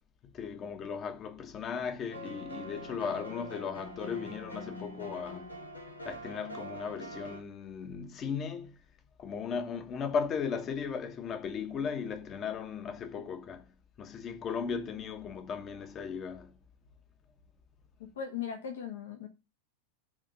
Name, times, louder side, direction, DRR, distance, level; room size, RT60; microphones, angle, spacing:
voice 1, 0.3-5.5 6.0-8.8 9.2-13.7 14.0-16.5, left 6 dB, 30° left, 1.2 m, -36 dB
sound 1, 2.1-7.4, equal, 80° left, 1.5 m, -44 dB
voice 2, 18.0-19.3, left 8 dB, 60° left, 1.4 m, -39 dB
8.8 x 3.7 x 6.8 m
figure-of-eight pair, 90°, 0 cm